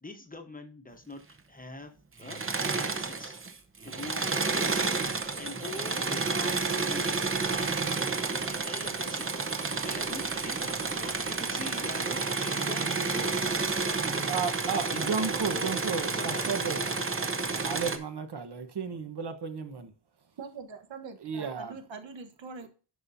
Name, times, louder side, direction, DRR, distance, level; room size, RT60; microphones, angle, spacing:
voice 1, 0.0-2.4 2.8-3.4 3.8-7.9 8.3-9.3 9.8-14.4 14.9-15.1 15.5-15.8 16.1-17.0, left 2 dB, 20° left, 1.0 m, -43 dB
Engine / Mechanisms, 2.2-3.5 3.8-18.0, right 4 dB, 30° right, 0.9 m, -30 dB
voice 2, 14.3-16.8 17.5-19.9 21.2-21.7, right 5 dB, 60° right, 1.2 m, -33 dB
voice 3, 20.4-22.7, right 4 dB, 80° right, 1.3 m, -43 dB
11.0 x 6.0 x 2.7 m
wide cardioid pair, 155°, 44 cm